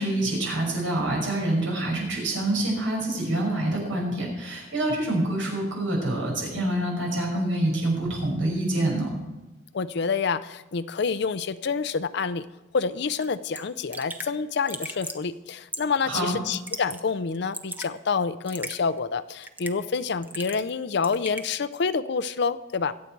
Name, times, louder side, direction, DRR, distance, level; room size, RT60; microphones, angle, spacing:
voice 1, 0.0-9.1 16.0-16.4, right 1 dB, 85° right, -1 dB, 6.0 m, -26 dB
voice 2, 9.7-12.5 12.7-23.0, left 5 dB, 60° left, 12 dB, 0.5 m, -28 dB
Raindrop / Drip, 13.2-13.3 13.6-13.7 13.9-14.3 14.7-15.2 15.7-16.0 16.5-17.0 17.3-17.9 18.5-18.8 19.4-19.9 20.2-20.7 21.0-21.5, right 1 dB, 10° right, 0.8 m, -36 dB
23.5 x 8.4 x 4.6 m, 1.1 s
head